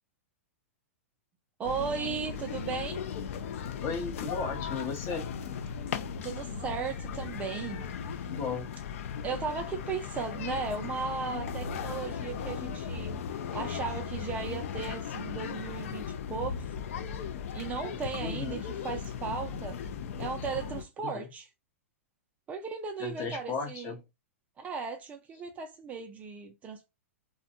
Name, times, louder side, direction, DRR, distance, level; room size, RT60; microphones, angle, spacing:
sound 1, 1.6-20.8, left 7 dB, 65° left, 0.4 m, -37 dB
voice 1, 1.6-3.0 6.2-8.2 9.2-13.1 13.5-16.0 16.3-16.7 17.5-19.8 20.2-21.5 22.5-23.9 24.6-26.9, right 5 dB, 20° right, 0.3 m, -36 dB
voice 2, 3.8-5.3 8.3-8.7 18.2-18.6 21.0-21.3 23.0-24.0, left 4 dB, 30° left, 0.7 m, -35 dB
2.5 x 2.1 x 2.7 m
hypercardioid pair, 135°, 8 cm